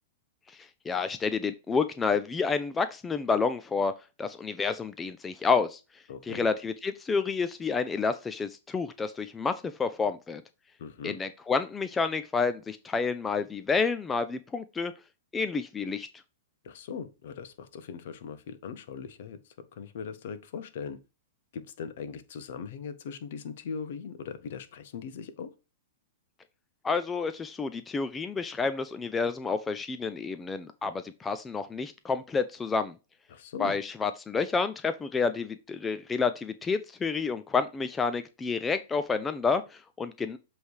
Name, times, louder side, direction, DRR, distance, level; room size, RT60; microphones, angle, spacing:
voice 1, 0.5-3.9 4.2-5.8 6.3-10.4 11.0-14.9 15.3-16.1 26.8-32.9 33.6-40.4, left 5 dB, 15° left, 0.5 m, -29 dB
voice 2, 6.1-6.5 10.8-11.2 16.6-21.0 21.5-25.5 33.3-33.7, left 6 dB, 65° left, 1.0 m, -40 dB
7.8 x 3.4 x 4.7 m
hypercardioid pair, 125°, 0 cm